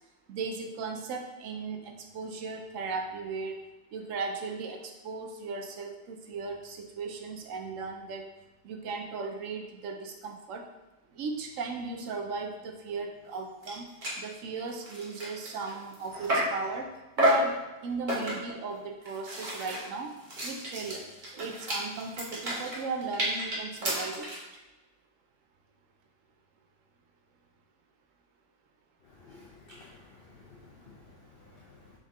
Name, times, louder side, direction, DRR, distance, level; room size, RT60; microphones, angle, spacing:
voice 1, 0.3-3.6 3.9-8.3 8.6-10.7 11.1-13.9 14.2-20.1 20.4-21.1 21.3-24.6, right 4 dB, 65° right, 3 dB, 0.9 m, -37 dB
sound 1, 13.3-13.4 13.6-13.8 14.0-14.2 14.7-16.6 17.2-17.5 18.1-18.6 19.0-24.5, right 1 dB, 35° right, 1.2 m, -31 dB
voice 2, 29.2-31.0 31.5-31.7, left 3 dB, 85° left, -2 dB, 0.5 m, -53 dB
4.0 x 3.5 x 3.6 m, 1.1 s
omnidirectional pair, 1.7 m